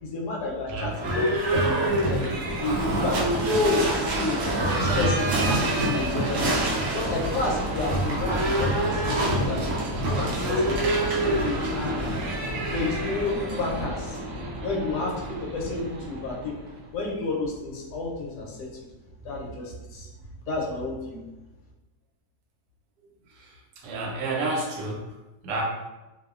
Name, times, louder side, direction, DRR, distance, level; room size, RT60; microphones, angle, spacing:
voice 1, 0.0-1.2 1.5-2.3 2.6-4.4 4.7-9.6 10.0-12.0 12.7-14.2 14.6-16.6 16.9-18.7 19.2-20.1 20.5-21.2, left 3 dB, 80° left, -2 dB, 1.2 m, -30 dB
Livestock farm animals working animals / Bell, 0.9-16.8, right 1 dB, 65° right, 0.8 m, -26 dB
voice 2, 23.8-25.0 25.4-25.6, right 2 dB, 85° right, -1 dB, 1.2 m, -30 dB
2.9 x 2.1 x 2.3 m, 1.1 s
omnidirectional pair, 1.8 m